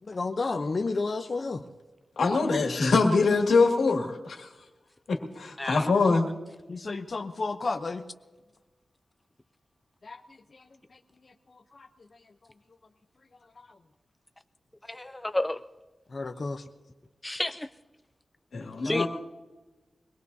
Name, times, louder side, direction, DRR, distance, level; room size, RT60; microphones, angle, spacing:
voice 1, 0.0-1.6 6.7-8.0 10.0-12.5 13.4-13.8 16.1-16.7, left 3 dB, 45° left, 4 dB, 0.7 m, -33 dB
voice 2, 2.2-4.5 5.1-6.3 18.5-19.1, left 4 dB, 85° left, 2 dB, 2.1 m, -24 dB
voice 3, 14.9-15.6 17.2-17.7 18.8-19.1, left 1 dB, 15° left, 10 dB, 0.5 m, -30 dB
23.5 x 20.5 x 2.7 m, 1.2 s
wide cardioid pair, 110°, 0 cm